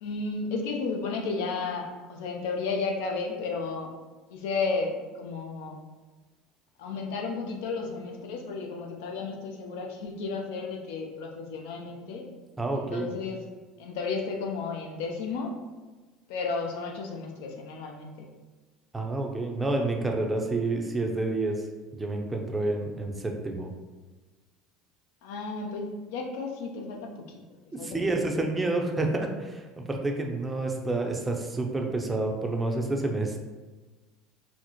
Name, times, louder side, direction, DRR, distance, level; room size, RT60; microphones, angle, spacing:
voice 1, 0.0-3.9 4.3-5.8 6.8-12.2 12.7-13.4 13.8-15.5 16.3-18.3 25.2-27.4 27.8-28.1, left 4 dB, 75° left, 2 dB, 0.6 m, -33 dB
voice 2, 12.6-13.1 18.9-21.6 21.9-23.7 27.7-33.4, right 2 dB, 15° right, 2 dB, 0.5 m, -29 dB
4.2 x 2.0 x 2.9 m, 1.3 s
hypercardioid pair, 85°, 0 cm